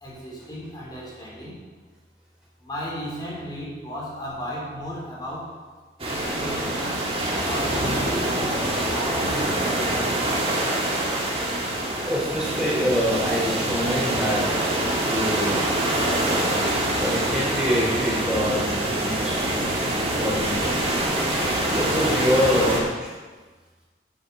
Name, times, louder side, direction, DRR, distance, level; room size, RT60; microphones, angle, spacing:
voice 1, 0.0-1.5 2.6-5.5 6.0-7.1 7.5-8.3 8.9-9.7, equal, 20° left, -5 dB, 3.3 m, -35 dB
sound 1, 6.0-22.8, right 1 dB, 30° right, 1.9 m, -25 dB
voice 2, 12.1-14.5 15.1-15.6 17.0-19.5 20.2-20.6 21.7-23.2, equal, 5° right, -6 dB, 2.9 m, -25 dB
12.5 x 6.5 x 5.3 m, 1.3 s
head